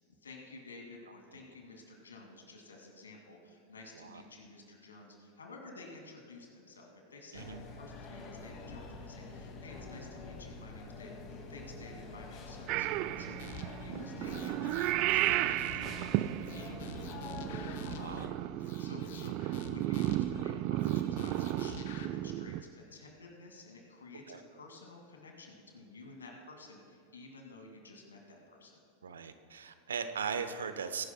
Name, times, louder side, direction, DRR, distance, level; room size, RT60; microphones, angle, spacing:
voice 1, 0.2-28.8, left 3 dB, 75° left, 1 dB, 2.3 m, -52 dB
sound 1, 7.3-18.3, left 3 dB, 35° left, 2.1 m, -46 dB
Purr / Meow, 12.7-22.6, right 15 dB, 45° right, 0.3 m, -34 dB
sound 2, 13.4-13.9 14.2-16.1 16.4-18.3 18.6-20.4 20.8-22.1, left 7 dB, 60° left, 0.9 m, -49 dB
voice 2, 18.0-18.3 24.3-24.4 29.0-31.1, right 6 dB, 70° right, 10 dB, 0.8 m, -39 dB
21.5 x 11.5 x 2.3 m, 2.6 s
figure-of-eight pair, 90°, 0 cm